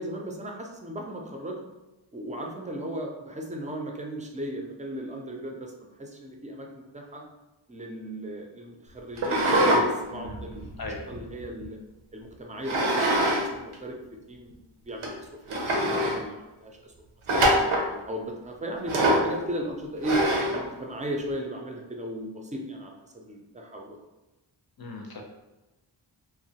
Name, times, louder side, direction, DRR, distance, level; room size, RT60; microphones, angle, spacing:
voice 1, 0.0-1.6 2.1-7.2 7.7-10.7 11.1-11.8 12.1-14.0 14.3-14.6 14.8-16.8 17.3-17.4 18.1-20.2 20.5-24.0, right 1 dB, 15° right, 1 dB, 0.4 m, -36 dB
sound 1, 9.2-9.8 10.2-11.6 12.6-13.4 13.7-13.8 14.5-14.6 15.0-15.1 15.5-16.2 17.3-17.9 18.9-19.3 20.0-20.6, right 1 dB, 90° right, 0.6 m, -23 dB
voice 2, 10.1-10.5 10.8-11.0 24.8-25.2, left 3 dB, 50° left, 1 dB, 0.6 m, -38 dB
2.9 x 2.1 x 2.8 m, 1.0 s
wide cardioid pair, 40°, 48 cm